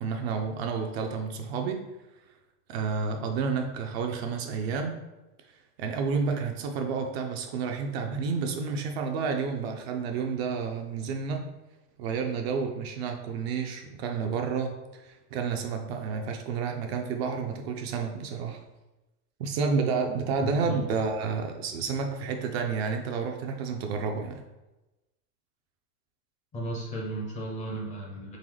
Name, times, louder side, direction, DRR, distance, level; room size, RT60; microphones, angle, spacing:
voice 1, 0.0-1.8 2.7-5.0 5.8-11.5 12.0-18.6 19.4-24.4, right 5 dB, 45° right, 4 dB, 0.4 m, -30 dB
voice 2, 20.4-20.8 26.5-28.4, right 2 dB, 15° left, -1 dB, 0.5 m, -34 dB
3.9 x 3.4 x 3.1 m, 1.0 s
supercardioid pair, 140°, 47 cm